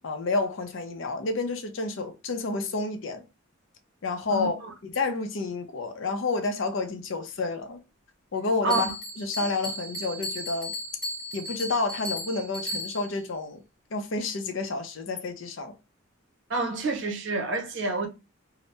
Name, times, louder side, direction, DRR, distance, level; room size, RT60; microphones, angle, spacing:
voice 1, 0.0-3.2 4.0-4.6 4.8-7.8 8.3-8.9 9.2-10.7 11.3-13.6 13.9-15.7, left 3 dB, 65° left, 0.5 m, -30 dB
Bell, 8.7-13.2, left 1 dB, 5° left, 1.0 m, -35 dB
voice 2, 16.5-18.1, right 3 dB, 60° right, 0.7 m, -28 dB
2.7 x 2.0 x 3.2 m
head